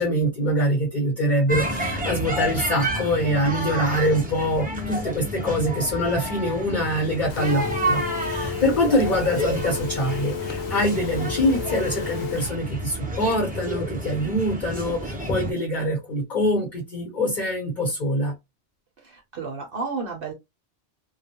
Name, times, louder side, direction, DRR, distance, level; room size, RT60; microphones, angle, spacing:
voice 1, 0.0-18.3, equal, 45° left, 1.0 m, -24 dB
sound 1, 1.5-15.5, right 1 dB, 10° right, 0.4 m, -30 dB
Telephone, 7.3-12.5, left 7 dB, 75° left, 0.8 m, -32 dB
voice 2, 19.0-20.3, right 4 dB, 60° right, 0.8 m, -32 dB
2.3 x 2.1 x 2.7 m
omnidirectional pair, 1.1 m